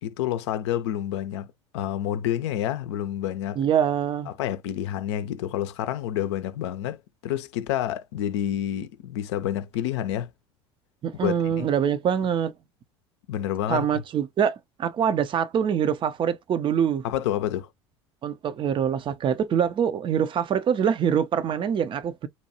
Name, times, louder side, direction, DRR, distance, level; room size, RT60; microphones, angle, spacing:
voice 1, 0.0-1.5 1.7-3.6 4.3-10.3 11.2-11.7 13.3-13.9 17.0-17.7, left 11 dB, 75° left, 0.5 m, -28 dB
voice 2, 3.6-4.3 11.0-12.5 13.7-17.0 18.2-22.3, right 8 dB, 35° right, 0.5 m, -24 dB
2.7 x 2.2 x 2.8 m
hypercardioid pair, 75°, 15 cm